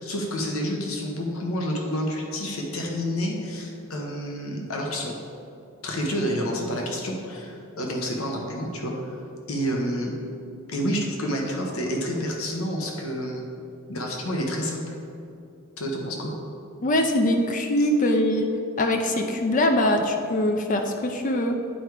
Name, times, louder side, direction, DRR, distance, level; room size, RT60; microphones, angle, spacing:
voice 1, 0.0-5.1 5.8-9.1 9.5-10.2 10.7-13.4 13.9-14.9 15.8-16.3 17.8-17.9, equal, 85° left, 0 dB, 1.2 m, -29 dB
voice 2, 16.8-18.5 18.8-21.6, left 1 dB, 40° left, 4 dB, 0.5 m, -22 dB
8.9 x 4.7 x 4.9 m, 2.6 s
head